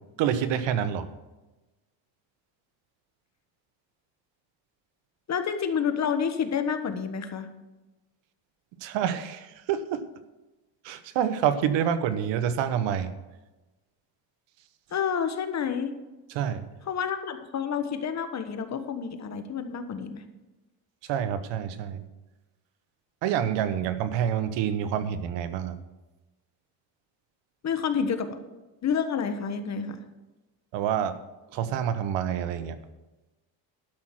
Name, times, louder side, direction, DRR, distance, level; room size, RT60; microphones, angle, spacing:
voice 1, 0.2-1.1 8.8-10.1 10.8-13.1 16.3-16.7 21.1-22.0 23.2-25.8 30.7-31.2 31.5-32.8, right 9 dB, 75° right, 12 dB, 1.1 m, -27 dB
voice 2, 5.3-7.5 14.9-15.9 16.9-20.2 27.6-28.4 28.8-30.0, left 7 dB, 35° left, 8 dB, 1.3 m, -29 dB
12.0 x 6.3 x 7.4 m, 1.1 s
cardioid pair, 125°, 44 cm